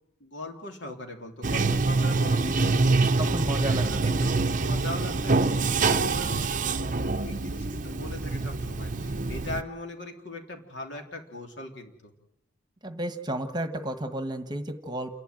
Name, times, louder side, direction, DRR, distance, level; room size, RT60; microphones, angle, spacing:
voice 1, 0.2-3.0 3.4-6.9 7.2-12.1, left 1 dB, 60° left, 3 dB, 3.5 m, -40 dB
Bathtub (filling or washing), 1.4-9.6, right 3 dB, 40° right, 0.8 m, -25 dB
voice 2, 3.0-4.1 12.8-15.2, right 1 dB, 20° right, 8 dB, 1.4 m, -32 dB
28.5 x 11.5 x 9.2 m, 0.83 s
head